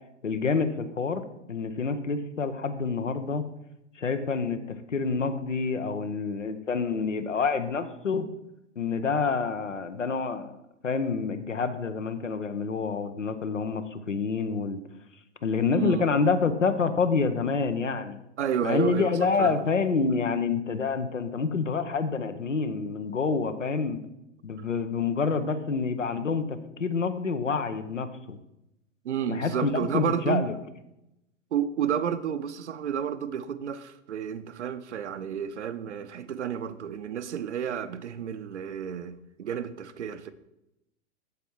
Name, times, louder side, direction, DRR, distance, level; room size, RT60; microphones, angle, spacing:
voice 1, 0.2-3.4 4.0-8.3 8.8-10.6 10.8-14.8 15.4-18.2 18.6-24.0 24.4-28.4 29.3-30.5, left 5 dB, 80° left, 0.9 m, -27 dB
voice 2, 15.7-16.1 18.4-19.6 29.0-30.5 31.5-40.3, right 8 dB, 70° right, 0.7 m, -31 dB
8.4 x 7.3 x 4.5 m
figure-of-eight pair, 100°, 36 cm